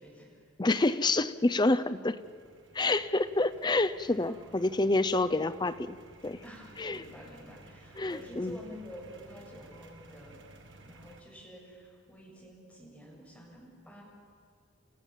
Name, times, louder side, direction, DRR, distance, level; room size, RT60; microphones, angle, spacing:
voice 1, 0.0-0.4 4.2-4.7 6.4-10.4 10.8-14.0, equal, 5° left, -4 dB, 6.7 m, -49 dB
voice 2, 0.6-2.2 2.7-6.0 6.2-6.4 6.8-7.0 8.0-8.6, left 2 dB, 20° left, 12 dB, 0.6 m, -28 dB
sound 1, 2.2-11.2, right 2 dB, 60° right, 2.0 m, -55 dB
30.0 x 15.5 x 7.4 m, 2.2 s
head